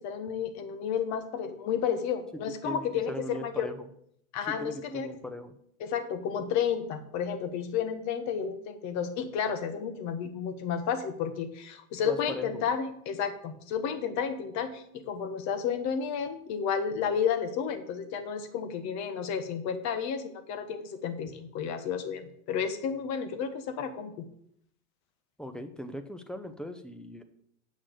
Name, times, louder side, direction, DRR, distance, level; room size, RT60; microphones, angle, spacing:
voice 1, 0.0-3.7 4.3-5.1 5.8-24.1, left 7 dB, 40° left, 9 dB, 1.4 m, -32 dB
voice 2, 2.6-3.9 4.5-5.5 12.0-12.7 25.4-27.2, equal, ahead, 9 dB, 0.7 m, -39 dB
8.4 x 6.1 x 6.3 m, 0.69 s
hypercardioid pair, 115°, 41 cm